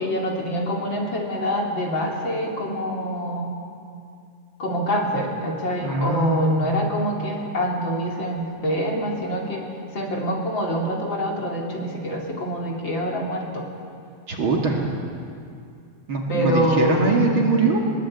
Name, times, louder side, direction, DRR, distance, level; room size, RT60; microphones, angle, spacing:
voice 1, 0.0-3.5 4.6-9.6 9.9-13.6 16.3-17.3, equal, 40° left, -1 dB, 3.2 m, -25 dB
voice 2, 5.8-6.7 14.3-15.0 16.1-17.8, right 3 dB, 45° right, 0 dB, 2.8 m, -22 dB
22.0 x 20.5 x 8.6 m, 2.4 s
omnidirectional pair, 3.4 m